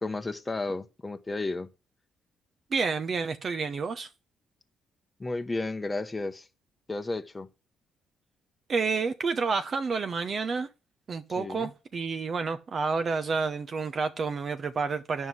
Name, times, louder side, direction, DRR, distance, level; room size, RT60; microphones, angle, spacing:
voice 1, 0.0-1.7 5.2-6.5 6.9-7.5 11.4-11.7, left 2 dB, 20° left, 0.9 m, -33 dB
voice 2, 2.7-4.1 8.7-10.7 11.1-15.3, right 4 dB, 45° right, 0.8 m, -29 dB
9.4 x 5.5 x 7.5 m
cardioid pair, 90°, 0 cm